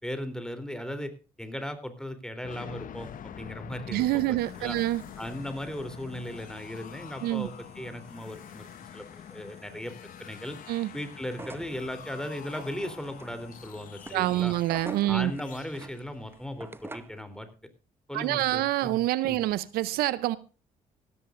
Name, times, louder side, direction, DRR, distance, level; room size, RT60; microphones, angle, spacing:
voice 1, 0.0-1.1 1.4-4.8 5.2-9.9 10.2-10.6 10.9-14.5 15.1-17.5 18.1-19.0 19.2-19.4, left 1 dB, 5° left, 10 dB, 3.4 m, -37 dB
sound 1, 2.4-17.1, left 9 dB, 60° left, 0.9 m, -46 dB
voice 2, 3.9-5.0 7.2-7.5 10.7-10.9 14.1-15.3 18.1-20.4, right 16 dB, 80° right, 18 dB, 0.6 m, -26 dB
sound 2, 4.4-13.7, right 4 dB, 45° right, 7.6 m, -62 dB
sound 3, 11.4-17.2, right 2 dB, 15° right, 0.9 m, -45 dB
16.5 x 14.0 x 2.5 m, 0.34 s
supercardioid pair, 60°, 16 cm